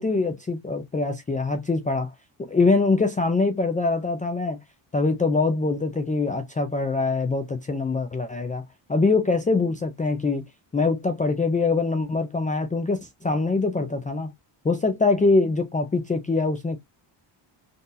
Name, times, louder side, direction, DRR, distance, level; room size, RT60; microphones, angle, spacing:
voice 1, 0.0-2.1 2.4-4.6 4.9-8.6 8.9-10.4 10.7-14.3 14.6-16.8, left 3 dB, 15° left, 0.4 m, -23 dB
3.8 x 2.7 x 2.6 m
cardioid pair, 135°, 48 cm